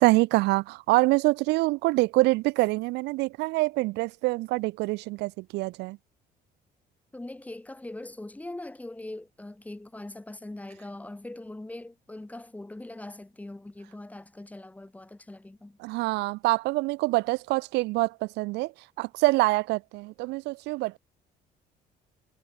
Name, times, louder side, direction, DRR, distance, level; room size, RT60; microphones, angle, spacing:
voice 1, 0.0-6.0 15.8-18.7 19.0-21.0, right 22 dB, 85° right, 0.4 m, -25 dB
voice 2, 7.1-15.8, left 2 dB, 10° left, 1.5 m, -41 dB
cardioid pair, 110°, 17 cm